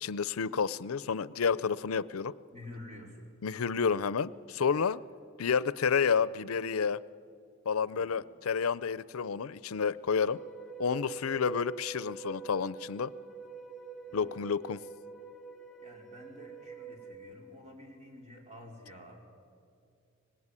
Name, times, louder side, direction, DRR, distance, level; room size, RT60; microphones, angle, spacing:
voice 1, 0.0-2.3 3.4-5.0 5.4-7.0 7.7-10.4 10.8-13.1 14.1-14.8, left 6 dB, 80° left, 18 dB, 0.5 m, -30 dB
voice 2, 2.5-3.3 7.9-8.3 14.1-14.4 15.8-19.2, left 1 dB, 30° right, 0 dB, 4.7 m, -50 dB
sound 1, 10.3-17.1, right 5 dB, ahead, 1.7 m, -46 dB
25.5 x 19.0 x 9.8 m, 2.3 s
head